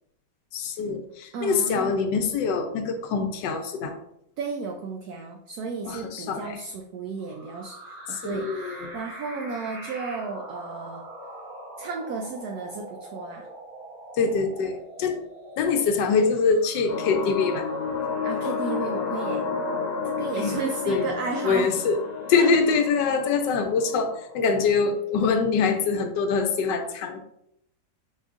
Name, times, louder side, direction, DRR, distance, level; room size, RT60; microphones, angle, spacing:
voice 1, 0.5-3.9 5.9-6.6 8.2-8.9 14.2-15.2 15.6-17.7 20.4-20.6 20.9-21.1 21.4-22.0 22.3-27.2, left 5 dB, 85° left, 6 dB, 1.3 m, -24 dB
voice 2, 1.3-2.0 4.4-11.1 11.8-13.5 18.2-19.4 20.0-21.7 22.3-22.5, right 4 dB, 70° right, 3 dB, 1.0 m, -33 dB
sound 1, 7.2-22.9, right 1 dB, 55° right, 1.6 m, -44 dB
sound 2, 16.9-24.5, left 5 dB, 65° left, 0.9 m, -31 dB
4.8 x 4.3 x 2.5 m, 0.78 s
omnidirectional pair, 1.9 m